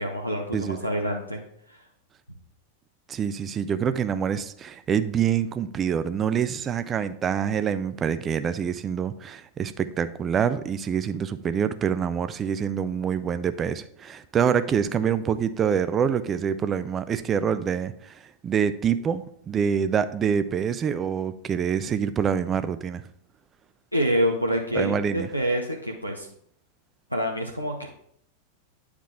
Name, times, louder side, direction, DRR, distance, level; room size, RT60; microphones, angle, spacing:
voice 1, 0.0-1.4 1.7-1.8 23.9-26.3 27.1-27.9, equal, 90° left, 1 dB, 0.7 m, -27 dB
voice 2, 0.5-0.9 3.1-23.0 24.7-25.3, right 7 dB, 25° right, 12 dB, 0.4 m, -26 dB
9.0 x 4.9 x 3.6 m, 0.67 s
figure-of-eight pair, 90°, 0 cm